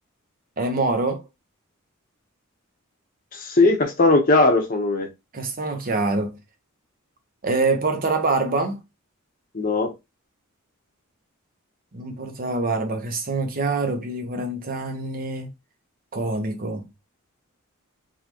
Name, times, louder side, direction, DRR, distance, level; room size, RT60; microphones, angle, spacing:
voice 1, 0.6-1.2 5.3-6.4 7.4-8.8 11.9-15.5 16.1-16.9, right 3 dB, 40° right, 0.9 m, -25 dB
voice 2, 3.3-5.1 9.5-9.9, left 2 dB, 40° left, 1.1 m, -19 dB
3.9 x 3.2 x 3.0 m
head